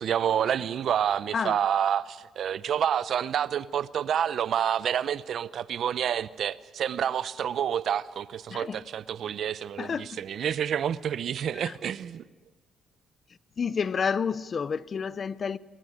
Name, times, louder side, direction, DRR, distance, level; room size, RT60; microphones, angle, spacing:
voice 1, 0.0-12.3, right 9 dB, 65° right, 0.6 m, -28 dB
voice 2, 8.5-8.8 9.8-10.2 11.5-11.8 13.6-15.6, left 6 dB, 45° left, 0.6 m, -30 dB
22.0 x 19.0 x 8.8 m
cardioid pair, 90°, 0 cm